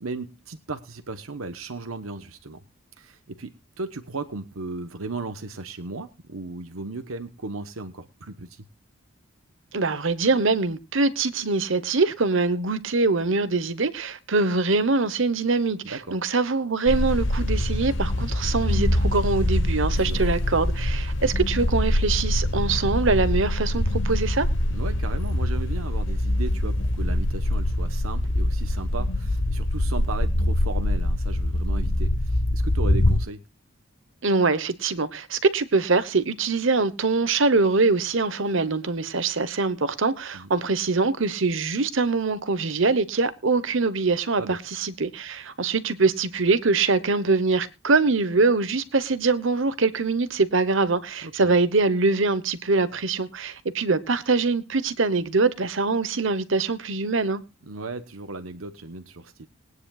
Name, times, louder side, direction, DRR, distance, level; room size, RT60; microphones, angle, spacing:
voice 1, 0.0-2.6 3.0-8.6 15.9-16.2 20.0-20.3 24.7-33.4 40.3-40.5 44.4-44.6 51.2-51.3 57.7-59.5, right 3 dB, 80° right, 1.1 m, -36 dB
voice 2, 9.7-24.5 34.2-57.4, right 3 dB, 65° right, 1.0 m, -23 dB
sound 1, 16.9-33.2, left 1 dB, 60° left, 1.1 m, -24 dB
21.5 x 9.7 x 2.4 m
head